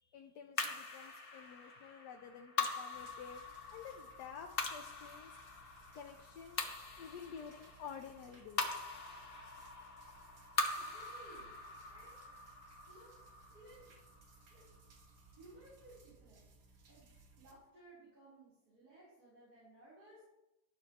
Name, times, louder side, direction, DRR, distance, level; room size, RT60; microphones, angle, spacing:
voice 1, 0.0-3.4 3.7-5.4 5.9-6.6 7.0-10.0, left 7 dB, 85° left, 4 dB, 1.3 m, -51 dB
sound 1, 0.6-15.1, left 3 dB, 40° left, 1.1 m, -43 dB
sound 2, 2.9-17.5, right 3 dB, 90° right, 2.0 m, -63 dB
voice 2, 10.7-11.5 11.9-12.3 12.9-13.2 13.5-13.9 14.5-14.8 15.3-16.5 16.9-20.2, right 1 dB, 70° right, -9 dB, 4.2 m, -59 dB
11.5 x 11.0 x 2.9 m, 0.97 s
omnidirectional pair, 1.7 m